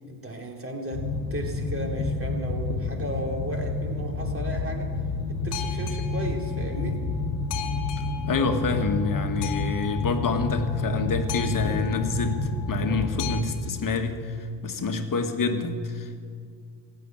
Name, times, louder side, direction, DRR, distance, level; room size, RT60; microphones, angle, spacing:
voice 1, 0.1-5.0 5.3-7.0, right 1 dB, 25° right, 1 dB, 3.0 m, -35 dB
Boat Water vehicle, 0.9-13.4, left 3 dB, 85° left, 1.5 m, -29 dB
voice 2, 8.3-16.2, left 3 dB, 40° left, 6 dB, 1.8 m, -27 dB
15.5 x 8.5 x 9.0 m, 2.2 s
hypercardioid pair, 60°, 48 cm